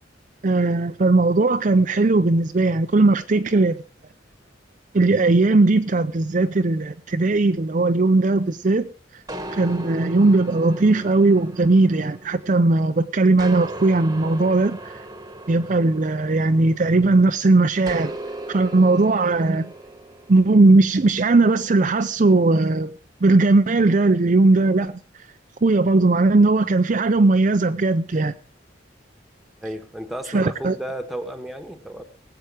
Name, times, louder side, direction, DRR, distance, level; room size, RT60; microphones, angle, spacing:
voice 1, 0.4-3.8 4.9-8.9 9.5-15.0 15.5-18.2 18.5-19.7 20.3-22.9 23.2-25.0 25.6-28.3 30.3-30.8, right 3 dB, 40° right, 0.5 m, -18 dB
sound 1, 9.3-12.9 13.4-17.1 17.9-20.5, right 1 dB, 20° right, 1.2 m, -37 dB
voice 2, 29.6-32.0, right 1 dB, ahead, 1.3 m, -33 dB
19.0 x 7.9 x 4.8 m
head